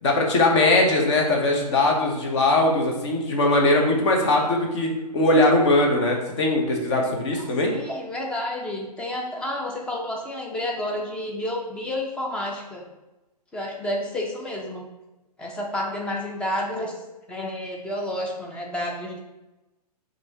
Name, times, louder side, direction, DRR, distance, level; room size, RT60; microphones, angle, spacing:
voice 1, 0.0-7.7, left 2 dB, 45° left, 1 dB, 1.0 m, -20 dB
voice 2, 7.4-12.8 13.5-14.9 15.4-16.9 17.3-19.2, left 1 dB, 5° left, -1 dB, 0.4 m, -30 dB
6.0 x 2.7 x 2.9 m, 1.0 s
figure-of-eight pair, 130°, 21 cm